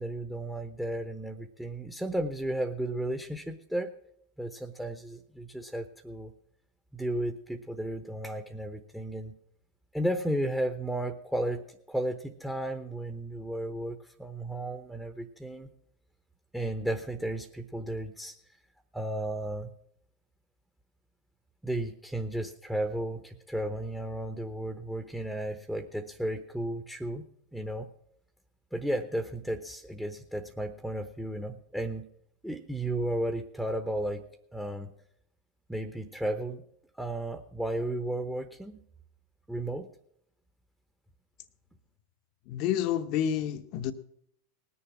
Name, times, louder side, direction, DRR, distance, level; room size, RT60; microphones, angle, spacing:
voice 1, 0.0-3.9 4.4-6.3 6.9-9.3 9.9-15.7 16.5-18.4 18.9-19.7 21.6-27.3 27.5-27.9 28.7-32.1 32.4-34.3 34.5-34.9 35.7-36.6 37.0-38.8 39.5-39.9, right 1 dB, 5° right, 9 dB, 0.9 m, -34 dB
voice 2, 42.5-43.9, left 10 dB, 55° left, 9 dB, 0.8 m, -29 dB
19.0 x 7.0 x 6.1 m, 0.72 s
hypercardioid pair, 95°, 0 cm